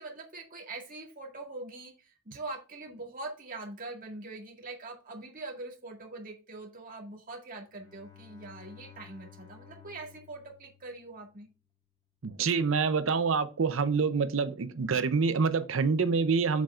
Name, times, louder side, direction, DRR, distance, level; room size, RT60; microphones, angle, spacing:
voice 1, 0.0-11.5, right 2 dB, 45° right, 2.0 m, -43 dB
Bowed string instrument, 7.7-11.5, left 8 dB, 20° left, 2.2 m, -54 dB
voice 2, 12.2-16.6, right 5 dB, 75° right, 0.6 m, -26 dB
7.4 x 7.4 x 2.4 m
head